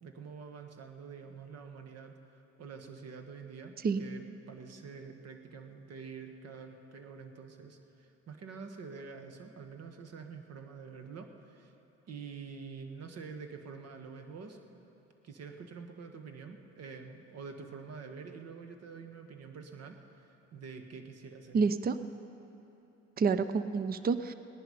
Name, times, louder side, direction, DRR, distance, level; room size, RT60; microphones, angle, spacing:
voice 1, 0.0-3.7 4.0-11.7 12.1-14.8 15.2-21.6, right 5 dB, 50° right, 6 dB, 1.5 m, -47 dB
voice 2, 21.5-22.0 23.2-24.3, right 5 dB, 30° right, 12 dB, 0.6 m, -28 dB
18.0 x 10.5 x 5.5 m, 3.0 s
hypercardioid pair, 65°, 33 cm